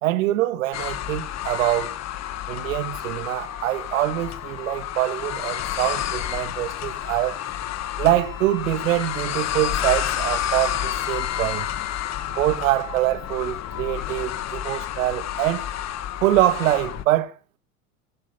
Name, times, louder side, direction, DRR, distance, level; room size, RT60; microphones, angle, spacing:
voice 1, 0.0-1.9 2.5-7.4 8.0-11.7 12.3-15.6 16.2-17.3, right 15 dB, 75° right, 1.7 m, -24 dB
sound 1, 0.7-17.0, left 11 dB, 40° left, 1.3 m, -30 dB
Wind instrument woodwind instrument, 6.5-14.7, left 14 dB, 75° left, 2.8 m, -40 dB
13.0 x 11.5 x 5.3 m
hypercardioid pair, 95°, 40 cm